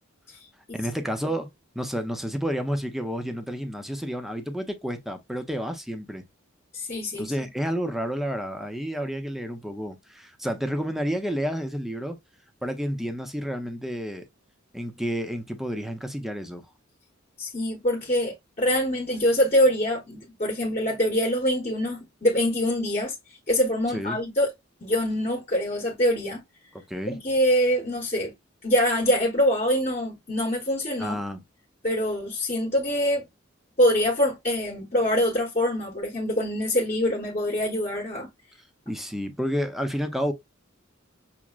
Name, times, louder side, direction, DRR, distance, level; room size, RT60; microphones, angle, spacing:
voice 1, 0.7-1.5 1.7-6.2 7.2-12.2 12.6-14.2 14.7-16.6 23.9-24.2 26.9-27.2 31.0-31.4 38.9-40.3, equal, ahead, 0.5 m, -30 dB
voice 2, 6.7-7.3 17.4-23.1 23.5-24.5 24.8-26.4 27.1-28.3 28.6-31.2 31.8-33.2 33.8-38.3, equal, 35° left, 1.0 m, -24 dB
5.9 x 2.1 x 2.3 m
head